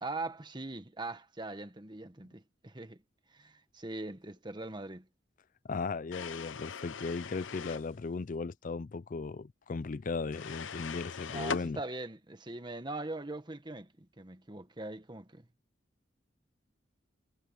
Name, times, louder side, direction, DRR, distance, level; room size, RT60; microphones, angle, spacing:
voice 1, 0.0-3.0 3.3-5.1 11.3-15.5, right 2 dB, 25° right, 1.4 m, -41 dB
voice 2, 5.7-11.8, left 4 dB, 45° left, 0.4 m, -37 dB
sound 1, 6.1-7.9 10.3-11.7, left 6 dB, 85° left, 0.7 m, -40 dB
head